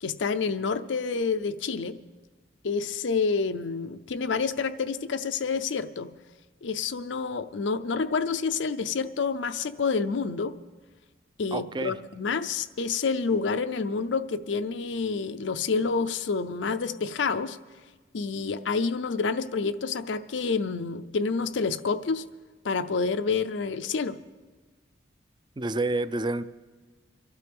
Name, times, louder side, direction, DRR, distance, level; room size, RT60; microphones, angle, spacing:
voice 1, 0.0-2.0 2.6-6.1 6.6-10.5 11.4-17.6 18.1-22.2 22.6-24.2, left 4 dB, 85° left, 11 dB, 0.6 m, -28 dB
voice 2, 11.5-11.9 25.6-26.4, right 2 dB, 25° right, 14 dB, 0.4 m, -28 dB
24.5 x 12.5 x 3.5 m, 1.3 s
head